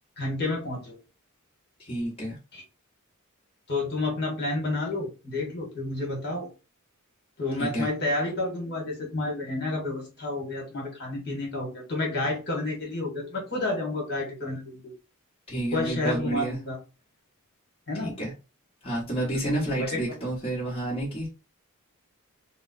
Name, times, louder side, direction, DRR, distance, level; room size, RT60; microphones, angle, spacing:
voice 1, 0.2-0.9 2.5-2.6 3.7-6.5 7.4-14.8 15.7-16.8 17.9-18.2 19.3-20.2, left 2 dB, 50° left, -1 dB, 1.5 m, -30 dB
voice 2, 1.8-2.4 7.6-7.9 15.5-16.6 18.0-18.3 18.8-21.3, right 1 dB, 25° left, -5 dB, 1.2 m, -30 dB
3.4 x 2.1 x 4.0 m, 0.30 s
head